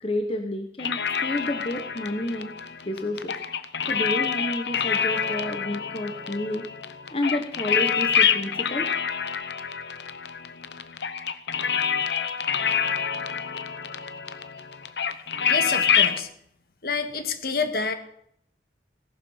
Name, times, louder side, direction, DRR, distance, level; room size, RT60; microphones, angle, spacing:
voice 1, 0.0-2.5 2.9-3.4 3.9-6.7 7.1-8.9, left 1 dB, 30° left, 5 dB, 1.1 m, -30 dB
sound 1, 0.8-16.2, left 7 dB, 80° left, 0.9 m, -27 dB
voice 2, 15.5-16.3 16.8-17.9, left 4 dB, 55° left, 8 dB, 1.7 m, -28 dB
17.5 x 12.0 x 5.7 m, 0.70 s
head